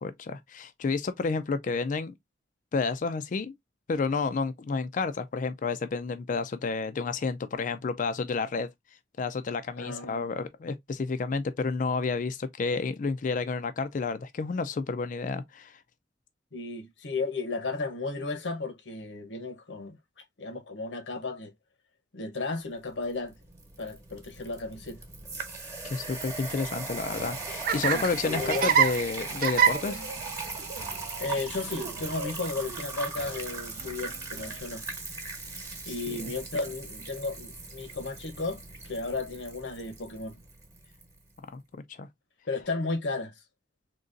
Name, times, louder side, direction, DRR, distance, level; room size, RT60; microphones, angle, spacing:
voice 1, 0.0-2.1 2.7-3.5 3.9-8.7 9.2-15.8 25.8-30.0 35.9-36.0 36.2-36.3 41.5-42.1, left 4 dB, 45° left, 0.4 m, -30 dB
voice 2, 9.8-10.3 16.5-20.0 20.4-21.5 22.1-23.4 23.8-25.0 27.9-28.7 31.2-34.8 35.9-40.4 42.5-43.3, left 3 dB, 80° left, 0.9 m, -34 dB
sound 1, 23.1-41.1, right 3 dB, 20° right, 1.1 m, -39 dB
Laughter, 27.0-34.6, right 7 dB, 50° right, 0.4 m, -30 dB
3.8 x 2.9 x 2.5 m
head